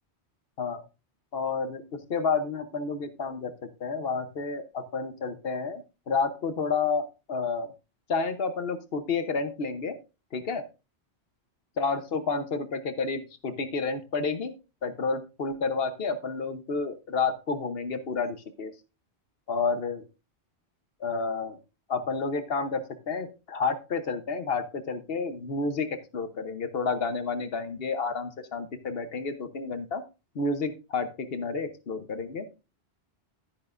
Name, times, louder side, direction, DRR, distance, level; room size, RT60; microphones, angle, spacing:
voice 1, 1.3-7.0 7.3-7.7 8.1-10.0 10.3-10.6 11.8-14.5 14.8-18.7 19.5-20.0 21.0-21.6 21.9-30.0 30.3-32.5, left 4 dB, 60° left, 9 dB, 1.2 m, -30 dB
11.0 x 10.0 x 2.5 m, 0.29 s
omnidirectional pair, 1.1 m